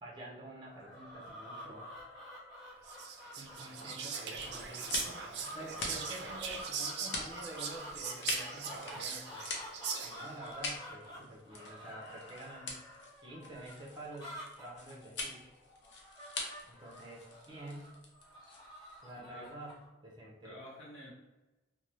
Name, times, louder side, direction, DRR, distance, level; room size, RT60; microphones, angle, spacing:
voice 1, 0.0-1.9 3.3-9.5 10.0-12.8 13.2-15.4 16.7-18.0 19.0-20.5, right 1 dB, 25° right, -3 dB, 0.6 m, -48 dB
sound 1, 0.6-19.9, equal, 20° left, 1.1 m, -50 dB
Whispering, 2.8-10.4, right 6 dB, 60° right, 0.4 m, -41 dB
sound 2, 4.3-19.0, left 3 dB, 65° left, 0.6 m, -43 dB
voice 2, 20.4-21.1, equal, 85° left, -4 dB, 1.1 m, -50 dB
2.7 x 2.2 x 3.1 m, 1.1 s
head